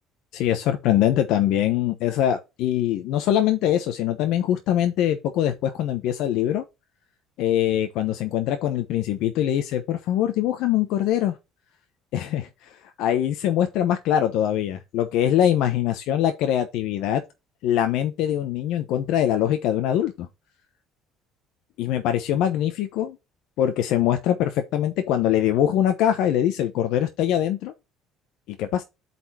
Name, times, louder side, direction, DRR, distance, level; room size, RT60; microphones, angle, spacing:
voice 1, 0.3-6.6 7.4-11.3 12.1-17.2 17.6-20.3 21.8-23.2 23.6-27.7 28.6-28.8, left 11 dB, 70° left, 0.9 m, -23 dB
7.9 x 4.3 x 4.2 m
cardioid pair, 140°, 0 cm